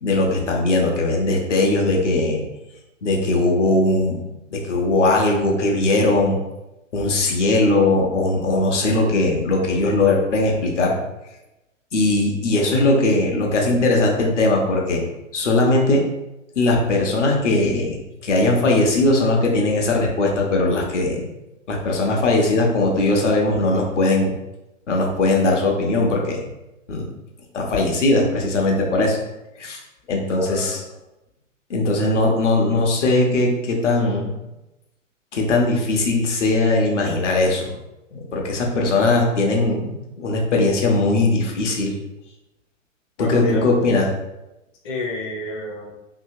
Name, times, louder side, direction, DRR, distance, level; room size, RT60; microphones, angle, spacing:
voice 1, 0.0-2.4 3.0-4.2 4.5-6.4 6.9-10.9 11.9-15.0 15.3-16.1 16.6-21.3 21.7-24.3 24.9-26.4 26.9-27.1 27.5-29.2 29.6-29.8 30.1-30.8 31.7-34.3 35.3-37.7 38.1-42.0 43.2-44.1, left 2 dB, 65° left, 0 dB, 0.8 m, -19 dB
voice 2, 30.3-30.9 43.2-43.7 44.8-45.9, left 2 dB, 25° left, -3 dB, 0.5 m, -30 dB
2.8 x 2.7 x 2.7 m, 0.95 s
figure-of-eight pair, 105°, 39 cm